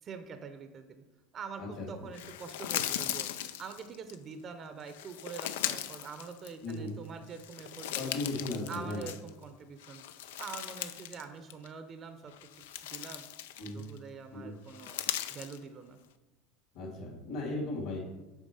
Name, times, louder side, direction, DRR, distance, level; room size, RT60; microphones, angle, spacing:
voice 1, 0.0-1.0 1.3-3.3 3.6-8.1 8.7-10.0 10.4-12.3 12.9-13.2 13.7-15.0 15.3-16.0, right 5 dB, 35° right, 8 dB, 0.6 m, -45 dB
sound 1, 2.1-4.2 4.9-6.9 7.3-9.4 9.8-11.2 11.5-11.7 12.3-14.0 14.7-15.6, left 11 dB, 90° left, 0.5 m, -38 dB
voice 2, 7.9-9.1 13.6-13.8 14.3-14.5 16.7-18.0, left 2 dB, 65° left, -6 dB, 2.7 m, -36 dB
7.2 x 4.6 x 5.5 m, 1.1 s
supercardioid pair, 125°, 0 cm